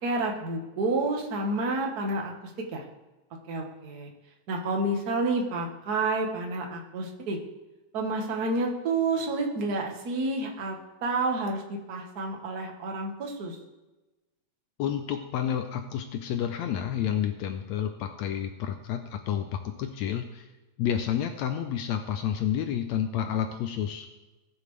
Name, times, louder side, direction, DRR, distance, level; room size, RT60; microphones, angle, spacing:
voice 1, 0.0-2.8 3.5-4.1 4.5-7.4 7.9-13.6, right 2 dB, 40° right, 1 dB, 1.5 m, -29 dB
voice 2, 14.8-20.5 20.8-24.1, left 9 dB, 80° left, 7 dB, 1.8 m, -30 dB
18.5 x 7.2 x 3.3 m, 1.1 s
omnidirectional pair, 3.4 m